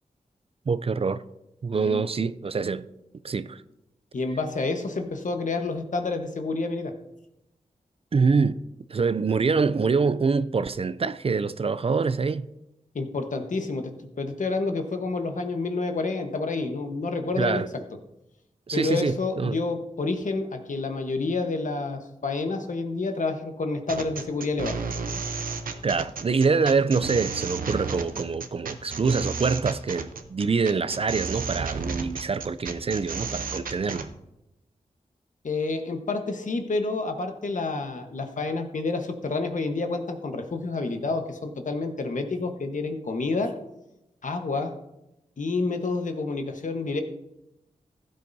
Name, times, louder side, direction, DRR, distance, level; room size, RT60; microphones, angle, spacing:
voice 1, 0.7-1.2 1.6-2.9 3.2-3.6 8.1-8.6 8.9-12.5 17.4-17.7 18.7-19.6 25.8-34.1, right 4 dB, 45° right, 0.4 m, -25 dB
voice 2, 1.7-2.0 4.1-6.9 12.9-17.8 18.7-24.8 35.4-43.5 44.2-44.8 45.4-47.0, left 3 dB, 65° left, 1.2 m, -29 dB
sound 1, 23.9-34.1, right 5 dB, 85° right, 0.8 m, -33 dB
15.0 x 8.9 x 2.7 m
cardioid pair, 55°, 14 cm